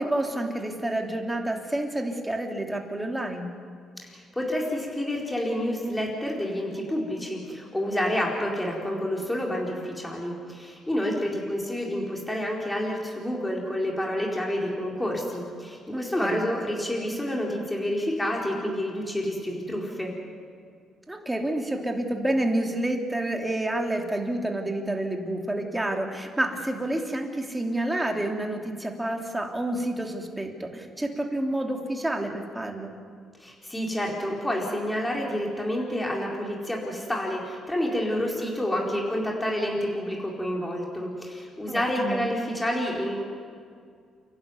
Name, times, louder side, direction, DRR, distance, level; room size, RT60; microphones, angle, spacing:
voice 1, 0.0-3.5 11.1-11.2 15.9-16.5 21.1-32.9 41.7-42.2, right 1 dB, 10° right, 2 dB, 3.0 m, -29 dB
voice 2, 4.0-20.1 33.4-43.2, equal, 10° left, -2 dB, 4.4 m, -29 dB
29.0 x 12.0 x 9.5 m, 2.2 s
cardioid pair, 90°, 0 cm